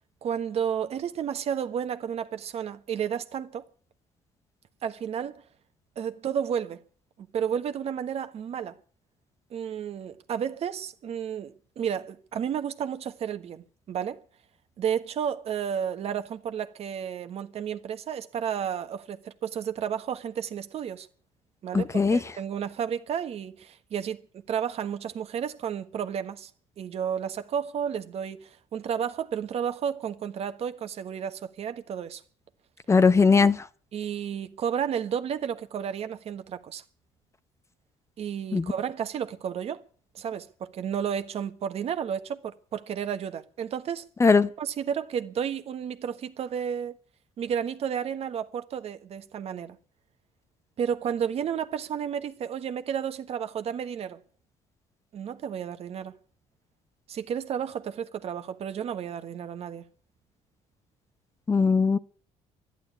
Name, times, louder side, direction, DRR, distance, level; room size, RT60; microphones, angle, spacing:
voice 1, 0.2-3.6 4.8-5.4 6.0-6.8 7.2-8.8 9.5-14.2 14.8-21.1 21.6-26.5 26.8-32.2 33.9-36.8 38.2-39.8 40.1-44.0 44.6-47.0 47.4-49.8 50.8-54.2 55.1-56.2 57.1-59.9, right 8 dB, 55° right, 1.4 m, -32 dB
voice 2, 21.7-22.2 32.9-33.6 38.5-38.7 44.2-44.5 61.5-62.0, left 4 dB, 20° left, 0.8 m, -19 dB
12.0 x 11.0 x 9.5 m
cardioid pair, 110°, 13 cm